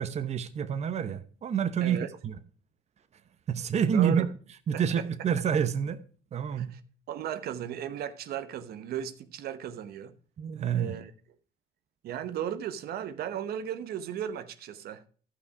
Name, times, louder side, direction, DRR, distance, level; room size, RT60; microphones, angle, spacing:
voice 1, 0.0-2.4 3.5-4.3 4.7-6.0 6.3-6.7 10.4-11.0, right 8 dB, 40° right, 0.9 m, -28 dB
voice 2, 3.9-4.2 4.7-5.1 6.5-6.8 7.1-10.1 10.7-11.1 12.0-15.1, right 10 dB, 70° right, 0.9 m, -36 dB
13.0 x 5.9 x 4.7 m
cardioid pair, 110°, 17 cm